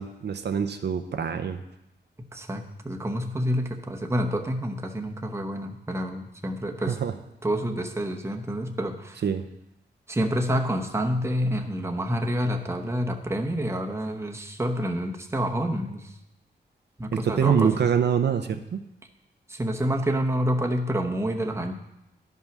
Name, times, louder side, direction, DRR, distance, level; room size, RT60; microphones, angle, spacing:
voice 1, 0.0-1.6 6.8-7.1 9.2-9.4 17.1-18.8, right 7 dB, 65° right, 8 dB, 0.6 m, -25 dB
voice 2, 2.3-7.0 7.4-9.2 10.1-16.0 17.0-17.7 19.5-21.7, equal, 15° right, 3 dB, 0.9 m, -28 dB
11.5 x 5.5 x 6.0 m, 0.86 s
wide cardioid pair, 125°, 19 cm